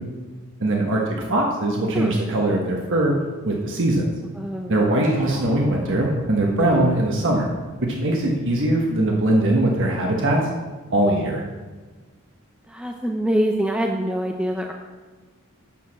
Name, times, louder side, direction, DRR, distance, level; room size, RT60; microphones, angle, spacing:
voice 1, 0.6-3.1 3.4-4.1 4.7-7.5 7.8-10.5 10.9-11.4, right 1 dB, 60° right, 0 dB, 1.3 m, -21 dB
voice 2, 4.4-4.8 6.6-6.8 12.7-14.7, equal, 5° right, 2 dB, 0.5 m, -25 dB
sound 1, 5.0-9.8, right 1 dB, 35° right, 2.2 m, -40 dB
9.1 x 6.5 x 6.3 m, 1.3 s
head